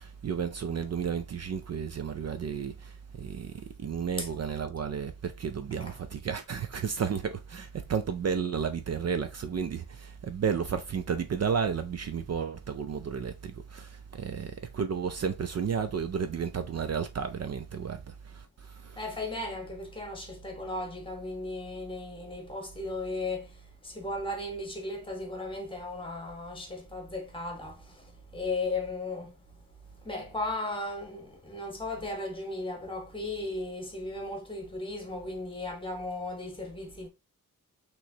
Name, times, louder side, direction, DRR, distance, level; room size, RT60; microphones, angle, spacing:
voice 1, 0.0-19.0, right 6 dB, 50° right, 0.4 m, -32 dB
voice 2, 18.9-29.4 30.0-37.1, left 2 dB, 15° left, 1.2 m, -36 dB
6.0 x 3.1 x 2.7 m
wide cardioid pair, 180°, 34 cm